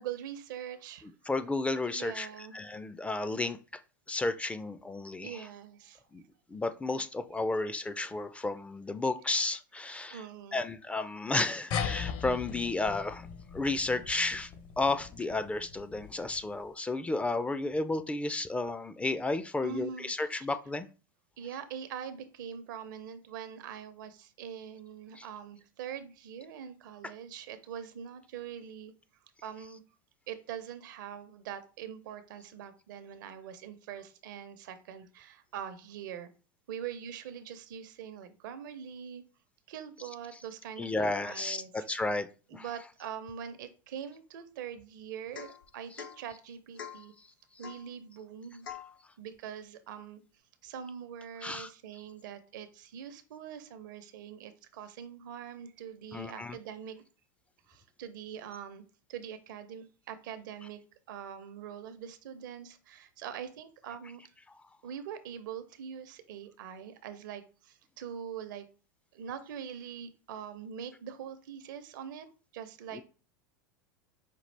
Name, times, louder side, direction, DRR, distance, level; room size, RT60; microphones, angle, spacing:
voice 1, 0.0-1.1 1.9-2.6 5.2-6.0 10.1-10.6 19.6-20.5 21.4-28.9 29.4-29.8 30.3-36.3 36.7-39.2 39.7-42.0 42.5-47.1 47.6-48.7 49.2-50.2 50.6-57.0 57.7-58.8 59.1-60.8 61.1-64.3 64.8-68.7 69.1-72.3 72.5-73.0, right 8 dB, 70° right, 11 dB, 0.6 m, -43 dB
voice 2, 1.3-2.3 2.5-3.6 4.1-5.4 6.1-6.2 6.5-10.2 10.5-13.3 13.5-14.5 14.8-20.9 25.2-25.3 40.8-42.3 42.5-42.6 51.4-51.7 56.1-56.6 72.9-73.0, left 2 dB, 10° left, 11 dB, 0.3 m, -32 dB
sound 1, 11.7-16.6, left 7 dB, 50° left, 0.7 m, -39 dB
Domestic sounds home sounds / Chink clink / Drip, 45.3-45.6 46.0-46.2 46.8-47.1 47.6-47.9 48.6-48.9, left 8 dB, 85° left, 0.9 m, -44 dB
5.1 x 2.4 x 3.2 m, 0.36 s
hypercardioid pair, 90°, 11 cm